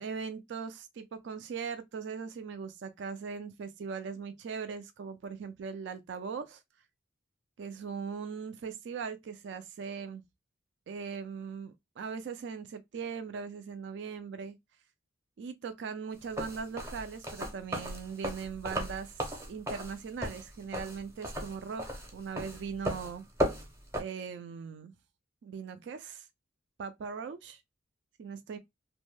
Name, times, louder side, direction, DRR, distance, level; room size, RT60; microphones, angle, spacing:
voice 1, 0.0-6.6 7.6-10.2 10.9-14.6 15.4-23.2 24.0-24.9 25.4-26.3 26.8-27.6 28.2-28.6, right 6 dB, 65° right, 0.3 m, -40 dB
sound 1, 16.2-24.0, equal, 15° right, 0.6 m, -35 dB
2.5 x 2.1 x 3.0 m
head